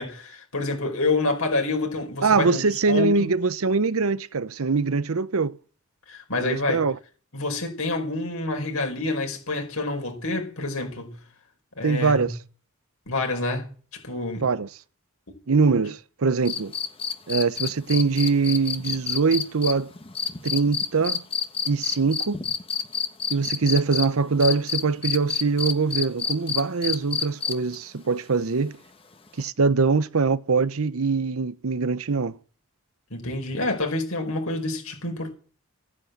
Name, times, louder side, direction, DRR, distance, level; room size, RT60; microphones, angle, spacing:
voice 1, 0.0-3.3 6.1-6.8 7.3-11.2 11.8-12.3 13.1-13.7 14.0-14.5 33.1-35.3, left 2 dB, 75° left, 4.9 m, -28 dB
voice 2, 2.2-5.6 6.4-7.0 11.8-12.3 14.4-14.7 15.5-16.7 17.3-19.9 20.4-21.2 21.7-22.4 23.3-28.8 29.4-32.4, right 4 dB, 70° right, 0.7 m, -23 dB
sound 1, 16.5-24.1 24.4-27.8 29.4-29.5, left 7 dB, 25° left, 1.1 m, -28 dB
14.5 x 9.8 x 8.1 m
head